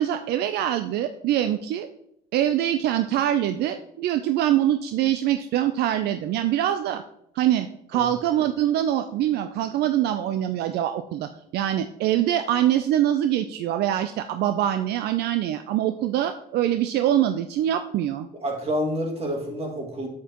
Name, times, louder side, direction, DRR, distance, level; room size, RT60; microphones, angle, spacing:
voice 1, 0.0-1.9 2.3-7.0 7.4-18.3, right 11 dB, 75° right, 9 dB, 0.5 m, -24 dB
voice 2, 18.4-20.1, equal, 35° right, 1 dB, 2.1 m, -28 dB
8.1 x 7.4 x 2.9 m, 0.76 s
cardioid pair, 110°, 17 cm